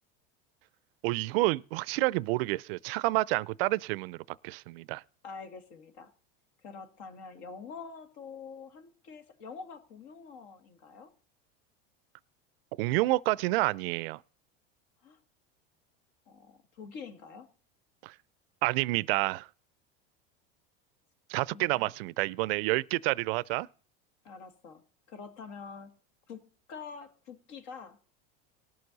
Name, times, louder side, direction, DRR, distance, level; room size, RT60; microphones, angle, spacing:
voice 1, 1.0-4.2 4.4-5.0 12.8-14.2 18.0-18.1 18.6-19.5 21.3-23.7, right 21 dB, 70° right, 0.5 m, -29 dB
voice 2, 5.2-6.1 6.6-11.1 15.0-15.2 16.3-17.5 21.5-21.9 24.2-24.8 25.1-26.0 26.3-28.0, left 5 dB, 60° left, 1.9 m, -46 dB
18.5 x 6.8 x 4.0 m
supercardioid pair, 120°, 30 cm